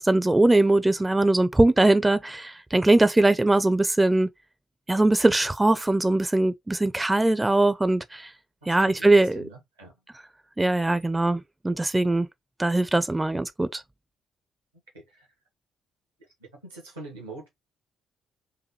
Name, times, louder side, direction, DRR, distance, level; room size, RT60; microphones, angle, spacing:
voice 1, 0.0-4.3 4.9-8.3 8.7-9.5 10.6-12.3 12.6-13.8, right 2 dB, 15° right, 0.5 m, -21 dB
voice 2, 8.8-9.9 14.9-15.3 16.5-17.5, right 2 dB, 90° right, 1.6 m, -44 dB
4.8 x 2.6 x 3.1 m
figure-of-eight pair, 45°, 0 cm